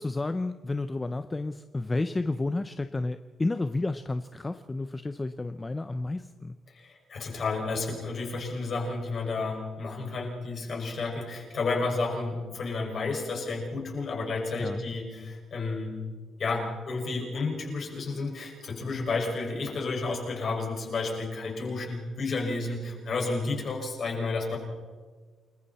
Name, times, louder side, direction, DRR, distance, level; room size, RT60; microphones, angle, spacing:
voice 1, 0.0-6.5 14.6-14.8, left 2 dB, 15° left, 10 dB, 0.6 m, -31 dB
voice 2, 6.7-16.0 16.4-24.6, left 3 dB, 40° left, 0 dB, 5.9 m, -31 dB
29.0 x 21.5 x 4.2 m, 1.4 s
cardioid pair, 180°, 0 cm